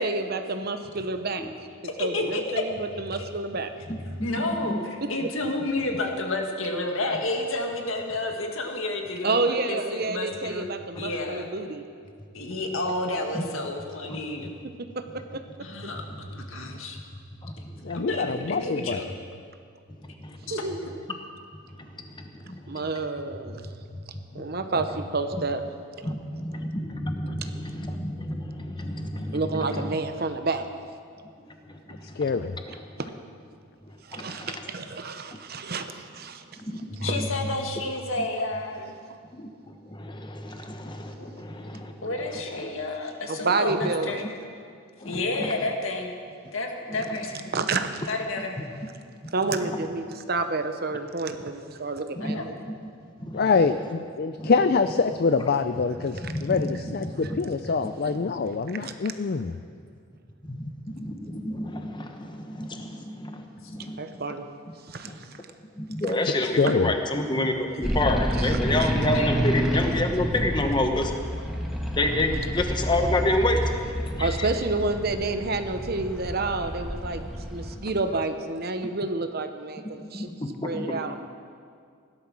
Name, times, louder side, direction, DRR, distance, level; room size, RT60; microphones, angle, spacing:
voice 1, 0.0-1.7 2.0-3.7 5.0-5.1 9.2-11.8 14.9-15.4 20.5-20.8 22.7-23.6 24.3-25.6 29.3-30.7 33.0-33.1 34.1-36.4 37.0-37.2 43.3-44.2 47.5-48.0 49.3-52.5 58.0-58.1 58.8-58.9 64.0-64.4 64.9-65.3 68.4-68.9 74.2-77.2 77.5-80.3 80.6-81.2, right 3 dB, 45° right, 8 dB, 0.9 m, -29 dB
voice 2, 1.8-2.4 4.2-10.7 11.0-11.5 12.3-14.5 15.6-17.0 17.9-19.1 20.5-20.6 37.0-38.9 41.2-41.3 42.0-44.2 45.0-46.1 46.5-47.5 48.1-48.6 52.2-52.5 69.1-69.4, left 2 dB, 75° left, 2 dB, 1.9 m, -30 dB
voice 3, 4.4-4.8 13.3-13.4 14.1-14.2 16.6-16.7 17.4-18.0 20.0-20.5 21.7-23.0 23.9-24.0 24.3-24.5 26.0-30.0 31.5-32.3 34.1-34.6 36.6-37.3 39.3-39.5 39.8-42.1 42.5-42.7 43.8-43.9 45.0-45.6 46.9-47.2 49.5-49.9 52.2-52.4 52.7-52.8 53.2-53.5 54.4-54.5 56.1-57.4 57.8-58.3 60.5-64.2 65.0-65.2 65.8-71.1 72.0-73.6 74.2-74.5 80.0-81.1, left 1 dB, 20° left, 4 dB, 1.1 m, -30 dB
voice 4, 17.8-19.0 32.1-32.5 53.3-59.5 66.2-66.9, left 4 dB, 45° left, 10 dB, 0.4 m, -25 dB
sound 1, 67.8-77.8, equal, ahead, 1.4 m, -29 dB
17.0 x 12.0 x 6.2 m, 2.2 s
head